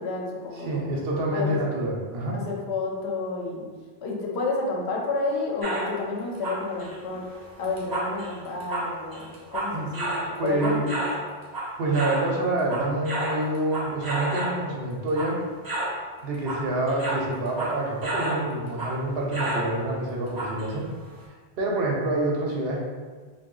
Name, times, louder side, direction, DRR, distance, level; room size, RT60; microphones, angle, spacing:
voice 1, 0.0-0.9 1.3-1.6 2.3-3.7 4.0-7.3 7.6-11.1, left 3 dB, 80° left, -1 dB, 0.9 m, -30 dB
voice 2, 0.6-2.4 9.7-9.9 10.2-10.9 11.8-15.4 16.2-20.9 21.6-22.8, right 2 dB, 70° right, -1 dB, 0.8 m, -27 dB
sound 1, 5.6-6.0 6.3-12.3 12.6-14.6 15.1-15.4 15.6-16.0 16.3-18.5 18.8-19.0 19.3-19.7 20.3-20.7 21.2-21.3, right 1 dB, 25° right, 0.5 m, -31 dB
2.7 x 2.2 x 3.7 m, 1.5 s
omnidirectional pair, 1.1 m